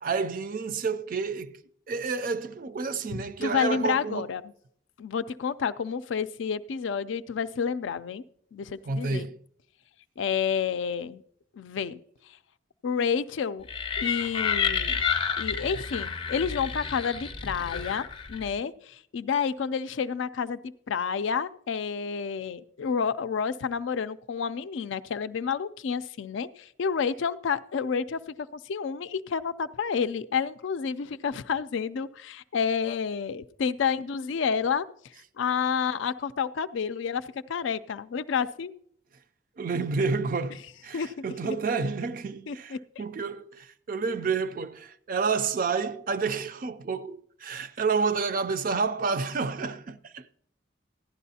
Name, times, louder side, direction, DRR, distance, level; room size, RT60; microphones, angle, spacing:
voice 1, 0.0-1.6 1.9-4.3 8.8-9.4 39.6-50.3, right 4 dB, 45° right, 0.4 m, -29 dB
voice 2, 3.1-4.4 5.0-8.2 8.5-9.3 10.2-11.2 11.6-12.0 12.8-13.7 14.0-14.9 15.4-28.2 28.7-34.9 35.4-38.7 40.9-41.1 41.4-41.6 42.5-42.8, left 6 dB, 75° left, 0.4 m, -29 dB
sound 1, 13.7-18.5, left 6 dB, 25° left, 0.5 m, -30 dB
15.5 x 11.0 x 2.7 m
head